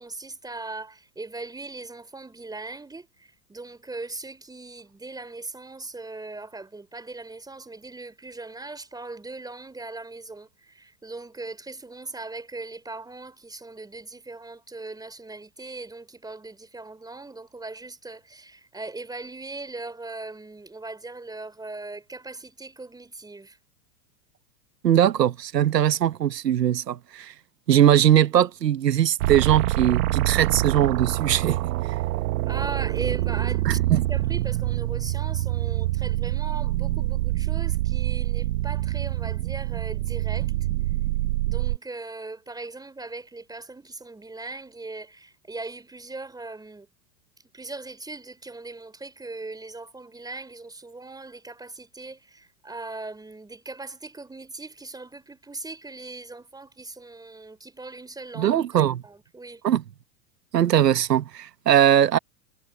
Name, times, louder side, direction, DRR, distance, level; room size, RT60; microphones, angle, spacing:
voice 1, 0.0-23.6 32.4-40.5 41.5-46.9 47.5-59.6, right 3 dB, 10° right, 3.7 m, -39 dB
voice 2, 24.8-27.3 27.7-31.6 33.6-34.0 58.4-59.0 59.6-59.8 60.5-62.2, right 11 dB, 80° right, 1.3 m, -20 dB
sound 1, 29.2-41.8, right 16 dB, 65° right, 1.2 m, -26 dB
hypercardioid pair, 100°, 48 cm